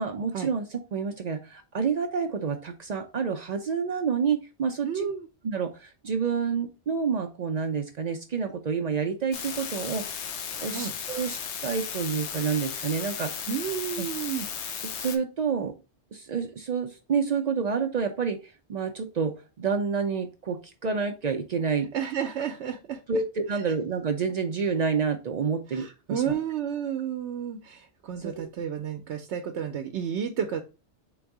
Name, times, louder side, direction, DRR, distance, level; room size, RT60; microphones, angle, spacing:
voice 1, 0.0-5.0 5.4-10.0 10.6-13.4 14.0-14.1 14.9-15.7 16.1-21.9 23.1-26.4 28.2-28.5, right 5 dB, 55° right, 5 dB, 0.4 m, -29 dB
voice 2, 4.8-5.3 10.7-10.9 13.5-14.5 21.9-23.0 23.5-23.6 25.7-30.6, right 8 dB, 75° right, 5 dB, 0.8 m, -31 dB
sound 1, 9.3-15.2, left 7 dB, 80° left, 1.0 m, -35 dB
3.9 x 2.6 x 4.7 m, 0.31 s
omnidirectional pair, 1.2 m